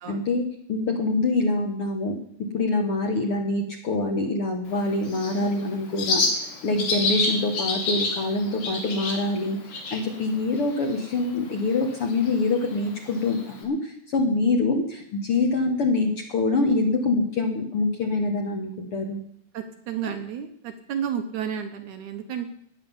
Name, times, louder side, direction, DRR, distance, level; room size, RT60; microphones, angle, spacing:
voice 1, 0.1-2.2 2.5-6.3 6.6-9.6 9.9-19.2, left 3 dB, 50° left, 3 dB, 1.8 m, -25 dB
Bird, 4.7-13.6, left 3 dB, 80° left, 4.9 m, -31 dB
voice 2, 19.5-22.5, right 8 dB, 65° right, 6 dB, 2.2 m, -32 dB
15.5 x 9.9 x 7.2 m, 0.69 s
omnidirectional pair, 4.1 m